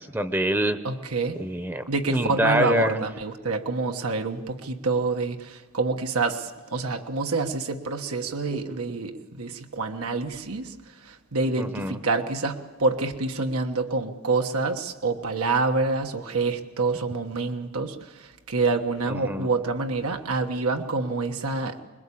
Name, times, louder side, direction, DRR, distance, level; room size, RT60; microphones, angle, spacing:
voice 1, 0.0-0.8 1.4-1.8 2.1-3.0 11.6-12.0 19.1-19.5, right 1 dB, 10° right, 10 dB, 0.8 m, -25 dB
voice 2, 0.8-1.4 1.9-10.7 11.0-21.8, right 3 dB, 90° right, 5 dB, 1.3 m, -27 dB
25.0 x 21.5 x 8.5 m, 1.4 s
head